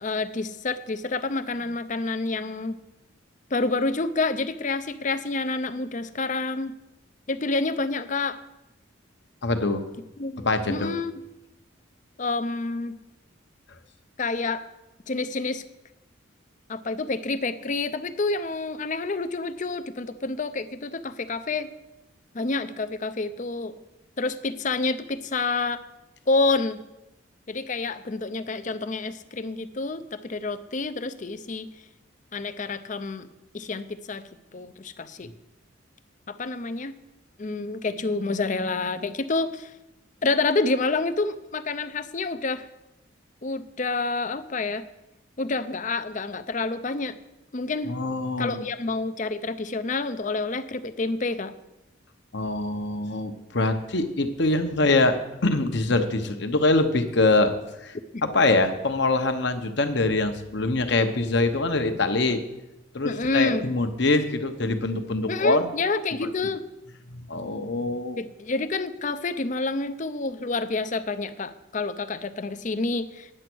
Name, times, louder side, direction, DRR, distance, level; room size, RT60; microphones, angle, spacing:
voice 1, 0.0-2.8 3.5-6.7 7.3-8.4 10.2-11.1 12.2-12.9 14.2-14.6 15.1-15.6 16.7-21.7 22.3-23.8 24.2-25.8 26.3-26.8 27.5-31.7 32.3-33.3 33.5-34.2 34.5-35.3 36.3-36.9 37.4-39.7 40.2-42.7 43.4-44.8 45.4-47.2 47.5-47.9 48.4-51.5 58.1-58.2 63.0-63.6 65.3-66.6 68.2-73.3, left 3 dB, 40° left, 12 dB, 0.5 m, -28 dB
voice 2, 9.4-9.8 10.4-10.9 47.9-48.7 52.3-57.5 57.8-62.4 62.9-65.7 66.2-66.3 67.1-68.2, left 2 dB, 55° left, 7 dB, 1.0 m, -24 dB
9.9 x 7.9 x 6.2 m, 0.93 s
head